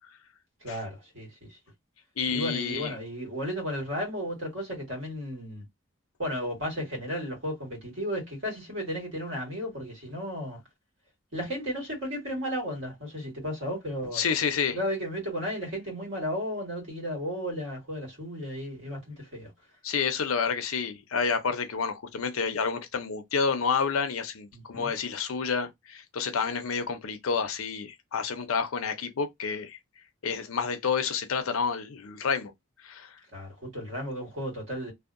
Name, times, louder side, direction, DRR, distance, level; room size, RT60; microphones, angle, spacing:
voice 1, 0.6-1.6 2.3-5.6 6.2-10.6 11.3-14.2 14.7-19.5 24.5-24.9 33.3-34.9, equal, 60° right, 1.5 m, -34 dB
voice 2, 2.2-2.9 14.1-14.8 19.8-29.8 30.2-32.5 32.8-33.1, left 5 dB, 85° left, 0.5 m, -29 dB
2.7 x 2.0 x 2.5 m
head